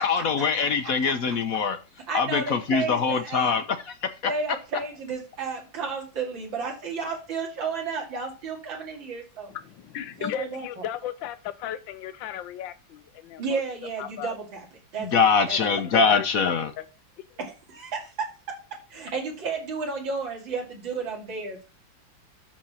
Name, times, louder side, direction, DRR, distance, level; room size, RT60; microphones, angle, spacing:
voice 1, 0.0-1.8 2.1-4.3 15.0-16.7, left 5 dB, 55° left, 10 dB, 1.1 m, -23 dB
voice 2, 2.1-3.6 4.3-9.5 10.2-10.9 13.4-14.6 14.9-15.6 15.9-16.0 17.4-18.6 18.9-21.7, right 4 dB, 80° right, 0 dB, 3.1 m, -32 dB
voice 3, 9.5-13.6 14.0-14.3 16.1-16.8, left 11 dB, 80° left, 13 dB, 1.5 m, -36 dB
12.5 x 4.3 x 5.6 m, 0.32 s
omnidirectional pair, 2.1 m